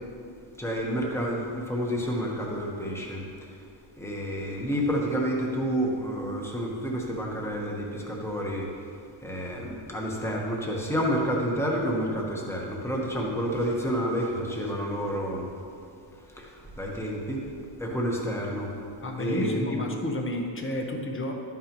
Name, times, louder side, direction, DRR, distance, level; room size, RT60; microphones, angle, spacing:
voice 1, 0.6-3.2 4.0-8.7 9.2-15.5 16.4-16.5 16.8-17.4 17.8-18.7 19.2-19.7, equal, 5° left, -2 dB, 1.2 m, -29 dB
voice 2, 19.0-21.3, left 1 dB, 25° left, 2 dB, 0.9 m, -30 dB
12.0 x 9.2 x 3.0 m, 2.5 s
wide cardioid pair, 175°, 48 cm